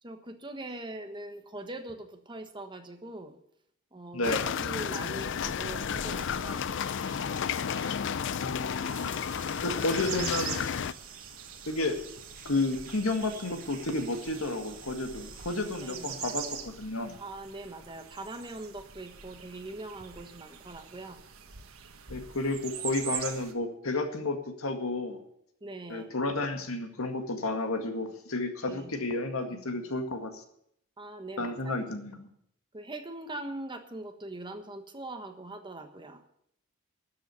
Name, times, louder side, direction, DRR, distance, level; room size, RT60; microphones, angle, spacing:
voice 1, 0.0-3.4 3.9-6.7 15.8-16.3 17.2-21.2 25.6-26.1 28.7-29.1 31.0-31.7 32.7-36.2, right 2 dB, 25° right, 6 dB, 1.4 m, -42 dB
voice 2, 4.1-4.5 8.4-9.1 9.6-10.6 11.7-12.0 12.4-17.2 22.1-25.2 25.9-30.4 31.4-32.3, left 2 dB, 85° left, 6 dB, 2.0 m, -31 dB
sound 1, 4.2-10.9, left 7 dB, 60° left, 0.5 m, -32 dB
sound 2, 5.3-23.5, right 8 dB, 90° right, 1.5 m, -44 dB
sound 3, 8.9-16.6, right 7 dB, 45° right, 1.9 m, -50 dB
12.5 x 7.8 x 9.4 m, 0.71 s
head